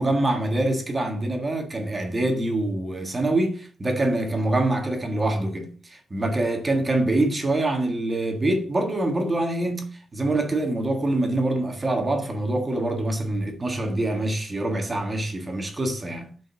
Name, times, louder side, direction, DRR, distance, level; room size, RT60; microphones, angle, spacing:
voice 1, 0.0-16.3, right 2 dB, 25° right, 1.6 m, -25 dB
5.5 x 5.2 x 6.2 m
cardioid pair, 100°, 0 cm